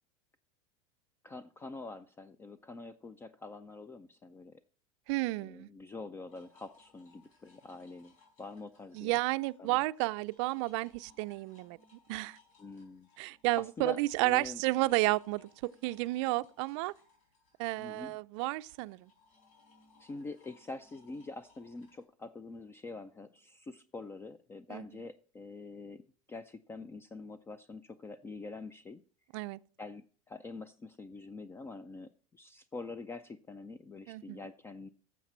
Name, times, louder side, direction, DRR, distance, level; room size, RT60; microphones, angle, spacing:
voice 1, 1.2-4.6 5.4-9.2 9.6-9.8 12.6-13.1 13.6-14.6 17.8-18.2 20.0-26.0 26.3-29.0 29.8-34.9, left 3 dB, 15° left, 0.3 m, -45 dB
voice 2, 5.1-5.7 9.0-11.8 12.1-12.4 13.2-16.9 17.6-19.1 24.7-24.8 29.3-29.6 34.1-34.4, right 21 dB, 60° right, 0.4 m, -32 dB
sound 1, 6.3-9.6 9.9-22.0, left 4 dB, 80° left, 4.2 m, -65 dB
10.0 x 7.2 x 4.3 m
supercardioid pair, 125°, 17 cm